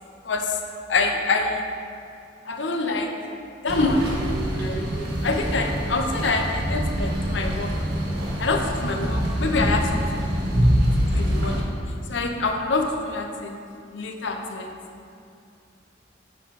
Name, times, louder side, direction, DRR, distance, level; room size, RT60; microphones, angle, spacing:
voice 1, 0.2-0.6 0.9-1.6 2.5-3.2 3.6-4.2 4.5-7.7 8.4-10.3 11.0-11.7 12.1-13.6 13.9-14.7, left 3 dB, 70° left, 4 dB, 0.8 m, -26 dB
sound 1, 3.7-11.6, equal, 60° right, 1.6 m, -25 dB
8.9 x 4.5 x 5.4 m, 2.5 s
head